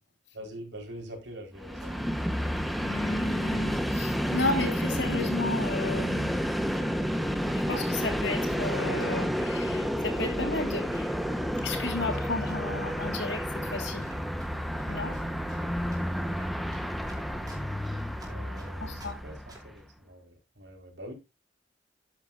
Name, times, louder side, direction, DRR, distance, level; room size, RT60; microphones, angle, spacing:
voice 1, 0.3-2.0 18.2-21.1, equal, 70° right, 4.4 m, -44 dB
Train, 1.6-19.7, equal, ahead, 1.1 m, -30 dB
Run, 1.6-19.1 19.5-19.8, right 2 dB, 20° right, 5.1 m, -54 dB
voice 2, 2.8-6.3 7.5-11.1 11.6-14.1 14.9-15.2 18.8-19.2, left 3 dB, 75° left, 2.7 m, -33 dB
12.0 x 10.5 x 2.6 m
head